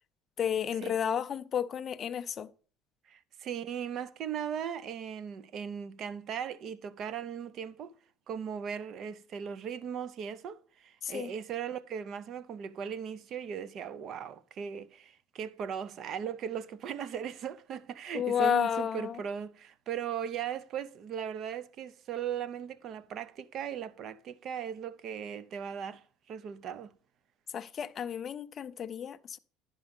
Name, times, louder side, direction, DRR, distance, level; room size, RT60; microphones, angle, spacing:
voice 1, 0.4-2.5 11.0-11.3 18.1-19.2 27.5-29.4, left 8 dB, 30° left, 0.4 m, -31 dB
voice 2, 3.1-7.9 8.3-26.9, right 8 dB, 40° right, 0.5 m, -38 dB
11.0 x 5.1 x 5.2 m
cardioid pair, 155°, 0 cm